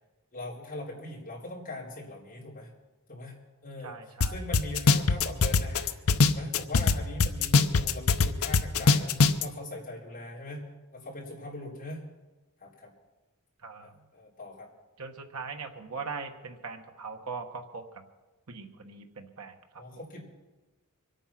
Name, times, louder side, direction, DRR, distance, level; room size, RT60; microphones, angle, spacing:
voice 1, 0.3-2.7 3.1-3.4 3.6-10.7 10.9-12.0 12.6-12.9 13.8-14.7 19.8-20.2, left 1 dB, 40° left, -4 dB, 4.0 m, -41 dB
voice 2, 3.8-4.4 13.6-13.9 15.0-17.8 18.5-19.5 19.9-20.0, right 4 dB, 80° right, 4 dB, 1.3 m, -40 dB
sound 1, 4.2-4.3 4.5-6.9 7.2-9.4, left 4 dB, 70° left, 0.8 m, -21 dB
24.5 x 9.0 x 6.0 m, 1.2 s
head